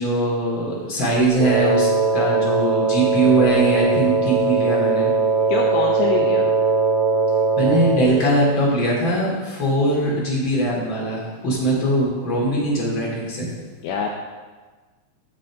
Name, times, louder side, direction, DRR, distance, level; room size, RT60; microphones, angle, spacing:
voice 1, 0.0-5.1 7.6-13.5, right 1 dB, 30° left, -4 dB, 3.1 m, -21 dB
Wind instrument woodwind instrument, 1.4-8.2, right 4 dB, 80° right, 4.2 m, -20 dB
voice 2, 5.5-6.5 13.8-14.1, left 6 dB, 75° left, 0 dB, 2.9 m, -24 dB
15.5 x 8.3 x 3.8 m, 1.3 s
omnidirectional pair, 5.7 m